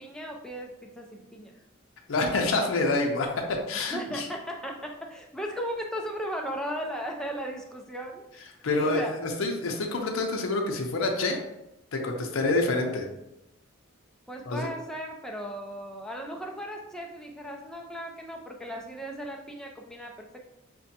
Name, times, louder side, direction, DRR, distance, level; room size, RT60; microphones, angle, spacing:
voice 1, 0.0-1.5 3.7-9.1 14.3-20.4, equal, 5° left, 1 dB, 0.3 m, -36 dB
voice 2, 2.1-4.3 8.6-11.4 11.9-13.1 14.5-14.7, left 2 dB, 80° left, 2 dB, 0.5 m, -27 dB
5.9 x 2.2 x 2.8 m, 0.90 s
head